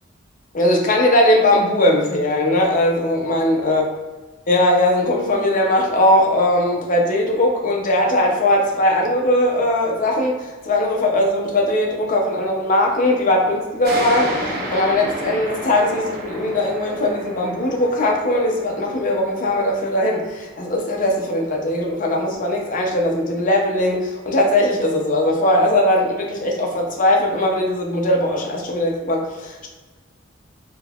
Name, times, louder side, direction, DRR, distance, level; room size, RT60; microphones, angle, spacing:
voice 1, 0.5-3.8 4.5-10.3 10.6-29.7, left 1 dB, 40° left, 0 dB, 0.5 m, -19 dB
sound 1, 13.8-21.0, equal, 50° right, 0.7 m, -31 dB
3.6 x 2.8 x 2.3 m, 1.2 s
head